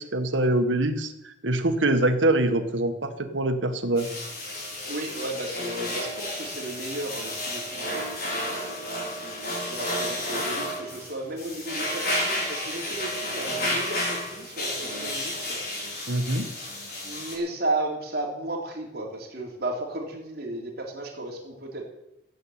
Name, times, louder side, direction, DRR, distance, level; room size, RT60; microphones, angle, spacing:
voice 1, 0.0-4.1 16.1-16.5, right 1 dB, 90° right, 7 dB, 1.6 m, -24 dB
sound 1, 4.0-17.4, left 1 dB, 55° left, 4.7 m, -31 dB
voice 2, 4.9-8.9 9.6-15.6 17.0-21.8, right 2 dB, 55° right, -1 dB, 3.4 m, -34 dB
16.0 x 8.2 x 8.8 m, 0.88 s
head